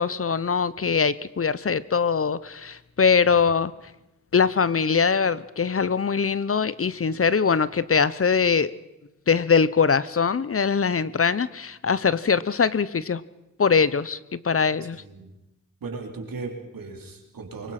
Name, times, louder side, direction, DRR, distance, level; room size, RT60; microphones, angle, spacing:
voice 1, 0.0-3.7 4.3-8.7 9.3-13.2 13.6-15.0, left 5 dB, 40° left, 18 dB, 0.7 m, -22 dB
voice 2, 14.8-15.3 15.8-17.7, right 4 dB, 80° right, 2 dB, 3.9 m, -37 dB
24.5 x 22.5 x 5.9 m, 0.95 s
wide cardioid pair, 85°, 34 cm